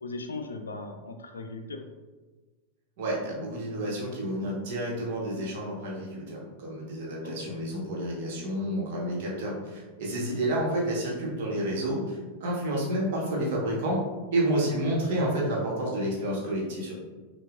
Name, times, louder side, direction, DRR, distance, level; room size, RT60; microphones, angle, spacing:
voice 1, 0.0-1.8 7.2-7.5 10.1-10.4 14.3-14.5, left 2 dB, 75° left, 5 dB, 0.4 m, -38 dB
voice 2, 3.0-16.9, right 1 dB, 50° right, -3 dB, 1.2 m, -30 dB
5.6 x 2.5 x 2.4 m, 1.2 s
figure-of-eight pair, 90°, 0 cm